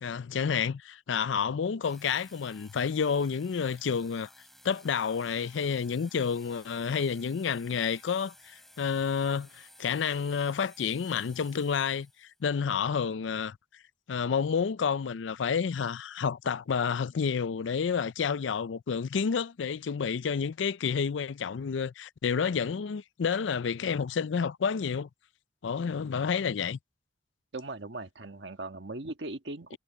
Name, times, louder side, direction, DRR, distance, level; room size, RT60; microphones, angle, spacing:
voice 1, 0.0-4.3 4.6-13.6 14.1-25.1 25.6-26.8, left 6 dB, 85° left, 0.4 m, -30 dB
sound 1, 1.8-12.4, equal, ahead, 5.1 m, -56 dB
voice 2, 27.5-29.8, right 2 dB, 70° right, 1.6 m, -39 dB
head